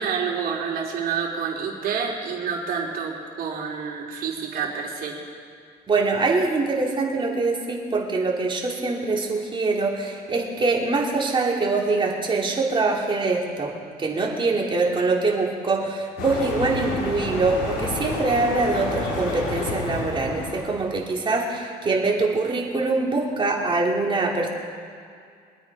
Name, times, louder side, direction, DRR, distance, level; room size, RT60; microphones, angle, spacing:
voice 1, 0.0-5.2, right 6 dB, 60° right, -1 dB, 3.4 m, -28 dB
voice 2, 5.9-13.7 14.0-24.5, right 3 dB, 30° right, -1 dB, 2.9 m, -24 dB
sound 1, 16.2-21.0, left 3 dB, 85° left, 4.0 m, -30 dB
24.5 x 9.4 x 4.9 m, 2.3 s
cardioid pair, 110°, 17 cm